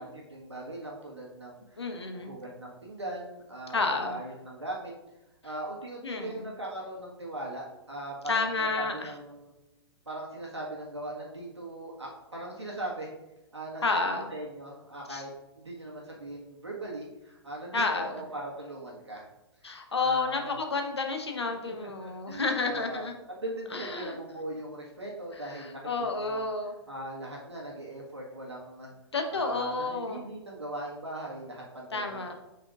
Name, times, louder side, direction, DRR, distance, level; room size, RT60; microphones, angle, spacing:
voice 1, 0.0-1.8 2.1-4.9 5.4-9.5 10.0-13.1 13.5-13.9 14.3-15.3 15.6-19.3 19.9-20.5 21.5-23.1 23.4-26.5 26.9-28.9 29.3-32.3, right 1 dB, 85° right, -3 dB, 1.6 m, -40 dB
voice 2, 1.8-2.3 3.7-4.2 6.0-6.4 8.3-9.1 13.8-14.3 15.1-15.2 17.7-18.2 19.6-23.1 23.7-24.1 25.4-26.7 29.1-30.3 31.9-32.3, left 3 dB, 75° left, 5 dB, 1.1 m, -30 dB
7.8 x 5.7 x 2.5 m, 0.97 s
figure-of-eight pair, 115°, 14 cm